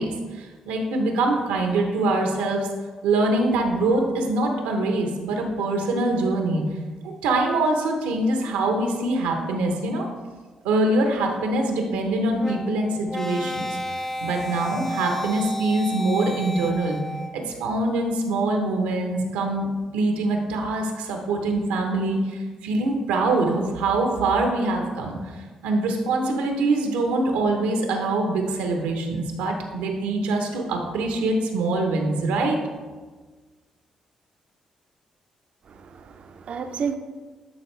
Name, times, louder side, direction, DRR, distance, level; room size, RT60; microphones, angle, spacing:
voice 1, 0.0-2.7 3.0-6.6 7.2-10.1 10.6-13.8 14.2-17.0 17.3-25.2 25.6-32.6, right 2 dB, 85° right, 3 dB, 1.0 m, -24 dB
sound 1, 12.4-17.5, left 1 dB, 15° left, 0.6 m, -32 dB
voice 2, 35.7-37.0, right 6 dB, 60° right, 8 dB, 0.6 m, -31 dB
10.5 x 4.2 x 3.3 m, 1.4 s
hypercardioid pair, 50°, 2 cm